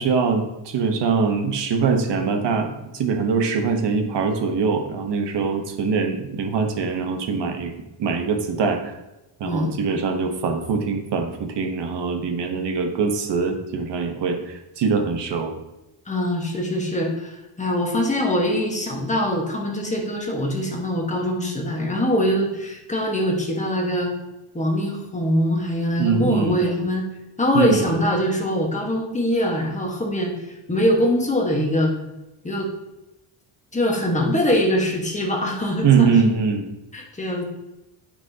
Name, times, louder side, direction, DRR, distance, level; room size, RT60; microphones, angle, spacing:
voice 1, 0.0-7.7 8.0-8.9 9.4-15.5 26.0-26.6 27.5-27.9 35.8-36.7, right 5 dB, 55° right, 5 dB, 1.1 m, -23 dB
voice 2, 9.4-9.7 16.1-24.1 24.5-27.0 27.4-30.3 30.7-31.9 32.4-32.7 33.7-36.1 36.9-37.4, left 1 dB, 15° left, 0 dB, 1.3 m, -23 dB
9.5 x 5.9 x 2.8 m, 0.96 s
cardioid pair, 145°, 49 cm